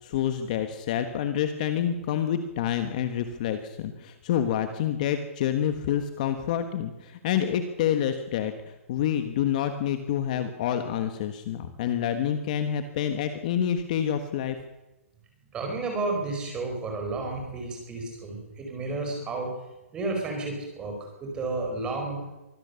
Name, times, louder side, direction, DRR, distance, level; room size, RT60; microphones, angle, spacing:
voice 1, 0.0-14.6, left 9 dB, 30° left, 8 dB, 1.4 m, -28 dB
voice 2, 15.5-19.5 19.9-22.3, right 3 dB, 10° right, 2 dB, 5.0 m, -32 dB
24.0 x 16.0 x 7.0 m, 0.98 s
hypercardioid pair, 170°, 8 cm